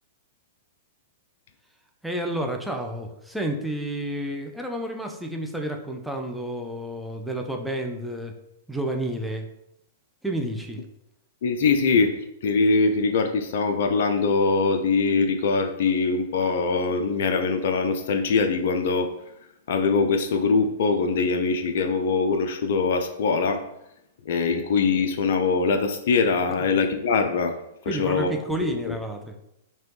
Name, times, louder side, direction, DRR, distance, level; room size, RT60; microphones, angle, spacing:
voice 1, 2.0-8.4 8.7-9.5 10.2-10.8 26.5-26.7 27.9-29.3, right 1 dB, 5° right, 2 dB, 0.5 m, -30 dB
voice 2, 11.4-12.1 12.4-19.1 19.7-23.6 24.3-27.5 27.9-28.3 28.9-29.0, left 4 dB, 60° left, 6 dB, 0.3 m, -22 dB
3.0 x 2.9 x 3.1 m, 0.82 s
figure-of-eight pair, 105°, 0 cm